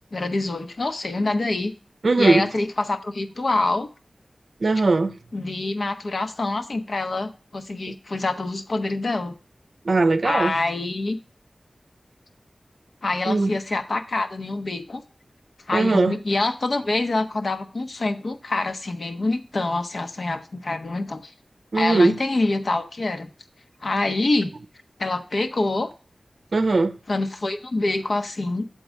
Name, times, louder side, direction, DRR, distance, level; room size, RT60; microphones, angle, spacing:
voice 1, 0.1-1.7 2.2-3.9 5.3-9.4 10.2-11.2 13.0-15.0 15.7-21.3 21.8-23.3 23.8-24.5 25.0-25.9 27.1-28.6, left 2 dB, 70° left, 0.8 m, -25 dB
voice 2, 2.0-2.5 4.6-5.2 9.8-10.6 13.3-13.5 15.7-16.1 21.7-22.2 26.5-27.0, right 3 dB, 70° right, 0.5 m, -19 dB
8.0 x 3.9 x 6.2 m
wide cardioid pair, 70°, 0 cm